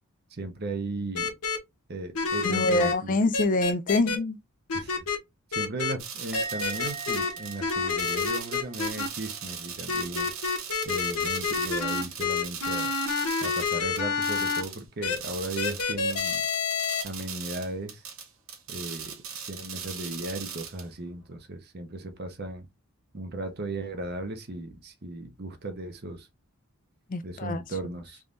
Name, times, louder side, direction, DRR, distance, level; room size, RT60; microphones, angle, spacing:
voice 1, 0.3-1.3 1.9-3.2 4.7-5.1 5.5-10.3 10.8-12.9 13.4-16.4 17.0-18.1 18.7-19.2 19.5-22.7 23.1-26.3 27.2-28.2, right 2 dB, 45° right, 0.7 m, -36 dB
pesh-marvin, 1.1-1.6 2.1-2.9 3.3-4.2 4.7-5.2 5.5-5.9 6.3-7.3 7.6-9.1 9.9-14.6 15.0-15.2 15.6-17.0, left 5 dB, 85° left, 0.9 m, -28 dB
voice 2, 2.4-4.4 27.1-27.6, left 2 dB, 35° left, 0.4 m, -25 dB
sound 1, 6.0-14.8 15.1-20.8, right 7 dB, 65° right, 1.2 m, -39 dB
Musical instrument, 6.3-9.7 10.0-10.4, right 4 dB, 5° right, 0.7 m, -41 dB
3.5 x 3.1 x 2.5 m
head